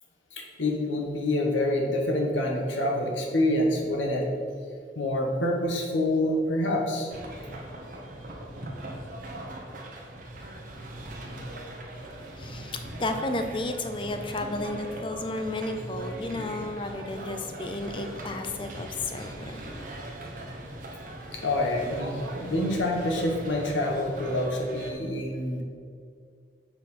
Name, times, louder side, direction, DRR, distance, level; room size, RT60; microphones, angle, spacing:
voice 1, 0.3-4.3 5.0-7.1 21.4-25.6, left 1 dB, 80° left, 0 dB, 1.3 m, -27 dB
sound 1, 7.1-24.9, right 1 dB, 45° right, 1.1 m, -40 dB
voice 2, 12.4-19.6, left 2 dB, 25° left, 7 dB, 0.5 m, -33 dB
7.3 x 4.4 x 5.5 m, 2.2 s
head